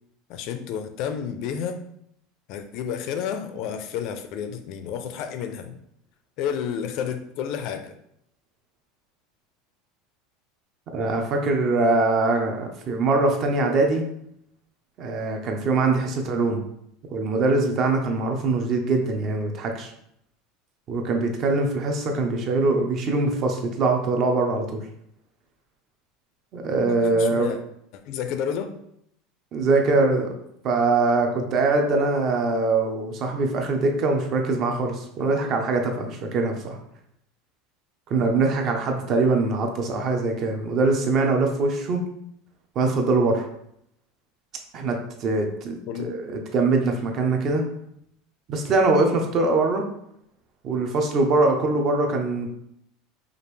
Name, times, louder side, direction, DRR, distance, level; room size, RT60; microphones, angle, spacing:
voice 1, 0.3-1.8 2.5-5.8 6.4-7.9 26.9-27.6 28.1-28.7 45.9-46.2, left 8 dB, 50° left, 7 dB, 0.5 m, -30 dB
voice 2, 10.9-14.0 15.0-16.6 17.1-19.9 20.9-24.8 26.5-27.5 29.5-30.3 30.6-36.8 38.1-42.0 42.8-43.5 44.7-47.6 48.5-49.8 50.6-52.5, right 3 dB, 35° right, 3 dB, 0.7 m, -23 dB
5.0 x 2.5 x 3.2 m, 0.74 s
supercardioid pair, 150°, 0 cm